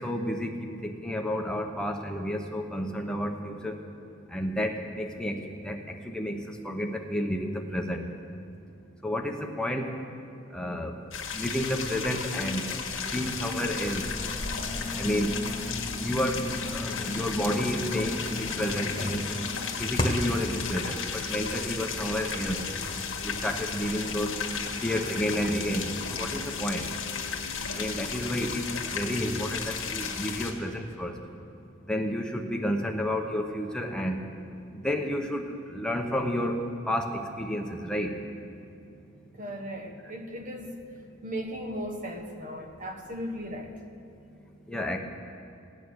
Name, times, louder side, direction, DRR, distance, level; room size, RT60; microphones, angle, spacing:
voice 1, 0.0-3.8 4.3-8.1 9.0-9.9 10.5-10.9 11.3-12.8 13.1-14.1 15.0-15.3 16.0-16.4 16.7-19.4 19.8-22.6 23.2-24.3 24.8-26.9 27.7-31.2 31.9-34.2 34.7-36.6 36.9-38.1 44.7-45.0, equal, 5° left, 2 dB, 1.0 m, -31 dB
sound 1, 11.1-30.5, left 6 dB, 85° left, 1.6 m, -34 dB
sound 2, 13.8-20.4, left 1 dB, 25° left, 1.5 m, -35 dB
sound 3, 15.0-28.4, left 2 dB, 65° left, 1.3 m, -47 dB
voice 2, 39.4-40.8 41.2-43.7, equal, 40° right, 4 dB, 1.3 m, -36 dB
17.5 x 9.4 x 6.5 m, 2.6 s
head